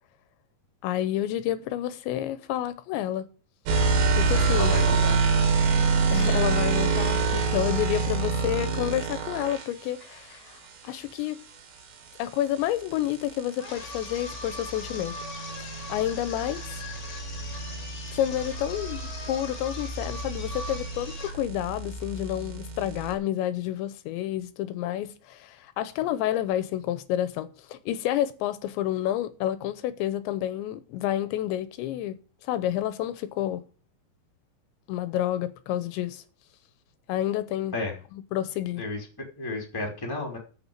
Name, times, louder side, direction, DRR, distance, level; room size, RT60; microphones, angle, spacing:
voice 1, 0.8-3.3 3.8-4.8 6.1-11.4 12.2-15.2 15.6-16.8 18.1-33.6 34.9-36.2 37.1-37.8 38.1-38.8, left 12 dB, 80° left, 3.0 m, -29 dB
sound 1, 3.7-9.7 12.1-23.1, right 4 dB, 70° right, 4.3 m, -27 dB
voice 2, 4.3-5.2 37.7-37.9 38.8-39.0 39.4-40.4, left 2 dB, 5° left, 2.3 m, -32 dB
sound 2, 13.6-21.4, left 2 dB, 35° left, 2.4 m, -40 dB
9.0 x 6.9 x 7.3 m
omnidirectional pair, 5.2 m